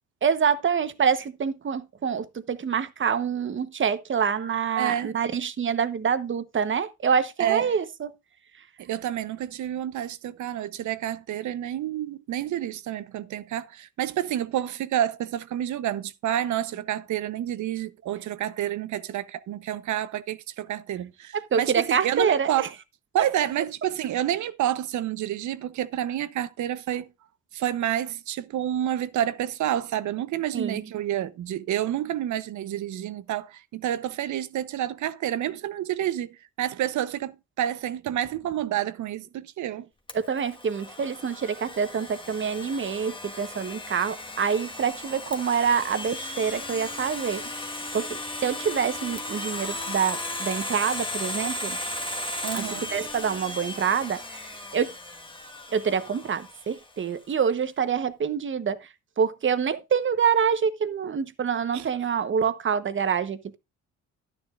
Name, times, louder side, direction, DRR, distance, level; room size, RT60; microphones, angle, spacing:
voice 1, 0.2-8.1 21.3-22.7 30.5-30.9 40.3-47.4 47.9-51.8 52.5-54.9 55.7-58.9 59.2-63.6, right 7 dB, 40° right, 1.1 m, -26 dB
voice 2, 4.8-5.1 7.4-7.7 8.8-22.7 23.1-27.1 27.5-39.9 52.4-52.9 61.7-61.9, right 11 dB, 75° right, 0.9 m, -29 dB
Domestic sounds home sounds, 40.1-56.9, left 2 dB, 15° left, 1.5 m, -36 dB
11.5 x 10.0 x 2.5 m
cardioid pair, 90°, 30 cm